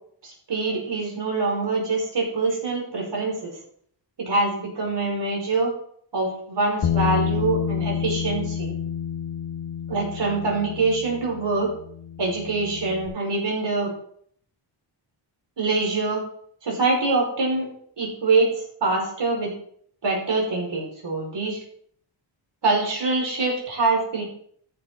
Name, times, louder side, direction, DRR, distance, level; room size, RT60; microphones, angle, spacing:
voice 1, 0.2-3.5 4.2-5.7 6.1-8.7 9.9-11.7 12.2-13.9 15.6-16.2 16.6-17.7 18.0-18.5 18.8-19.5 20.0-21.6 22.6-24.2, right 3 dB, 60° right, -2 dB, 5.0 m, -24 dB
Bass guitar, 6.8-13.1, left 8 dB, 55° left, 1.3 m, -29 dB
14.0 x 7.0 x 3.8 m, 0.62 s
cardioid pair, 85°, 47 cm